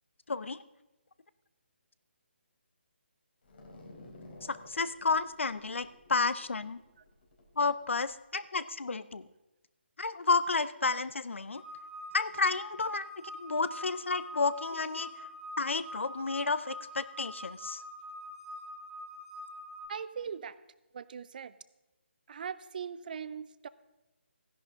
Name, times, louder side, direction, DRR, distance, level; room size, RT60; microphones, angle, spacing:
sound 1, 3.4-8.1, left 2 dB, 55° left, 3.7 m, -54 dB
voice 1, 4.5-6.8 7.6-9.2 10.0-11.6 12.1-13.1 13.4-15.3 15.6-17.8, left 4 dB, 85° left, 15 dB, 0.6 m, -31 dB
sound 2, 11.5-19.9, equal, 10° left, 1.9 m, -45 dB
voice 2, 19.9-20.6 20.9-21.6 22.3-23.7, right 7 dB, 45° right, 16 dB, 0.5 m, -40 dB
15.0 x 11.0 x 3.7 m, 1.0 s
figure-of-eight pair, 155°, 6 cm